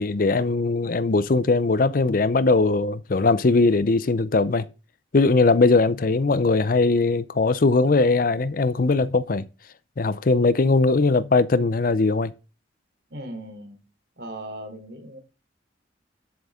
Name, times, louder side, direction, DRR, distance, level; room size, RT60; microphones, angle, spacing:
voice 1, 0.0-4.6 5.1-9.4 10.0-12.3, left 3 dB, 50° left, 0.5 m, -20 dB
voice 2, 13.1-13.8 14.2-15.2, right 1 dB, 60° right, 3.4 m, -38 dB
12.0 x 7.9 x 3.7 m
head